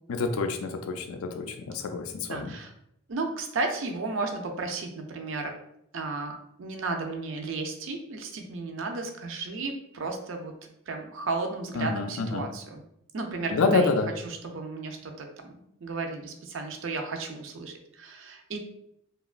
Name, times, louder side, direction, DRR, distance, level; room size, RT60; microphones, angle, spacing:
voice 1, 0.1-2.5 11.7-12.5 13.5-14.1, left 4 dB, 85° left, 6 dB, 0.4 m, -27 dB
voice 2, 2.3-2.7 3.1-5.6 5.9-12.8 13.1-14.0 14.2-15.5 15.8-18.6, right 3 dB, 65° right, 3 dB, 0.4 m, -34 dB
2.9 x 2.2 x 2.4 m, 0.77 s
head